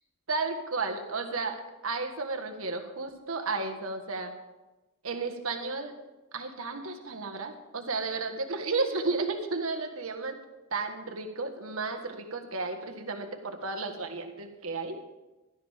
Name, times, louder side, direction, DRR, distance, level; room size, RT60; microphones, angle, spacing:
voice 1, 0.3-1.6 1.8-4.3 5.0-5.9 6.3-10.4 10.7-15.0, right 3 dB, 70° right, 4 dB, 1.6 m, -33 dB
16.0 x 12.5 x 3.6 m, 1.1 s
head